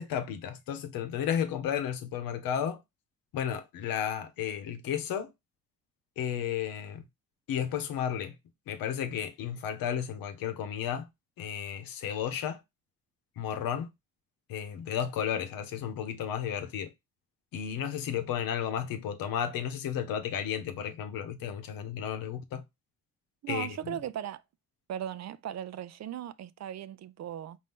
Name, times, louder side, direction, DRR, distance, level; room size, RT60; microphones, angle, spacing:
voice 1, 0.0-2.8 3.3-5.3 6.2-7.0 7.5-8.3 8.7-11.1 11.4-12.6 13.4-13.9 14.5-16.9 17.5-22.6 23.5-24.0, left 9 dB, 75° left, 0.9 m, -33 dB
voice 2, 23.4-24.4 24.9-27.6, right 10 dB, 50° right, 0.5 m, -37 dB
4.1 x 2.7 x 3.4 m
supercardioid pair, 55°, 35 cm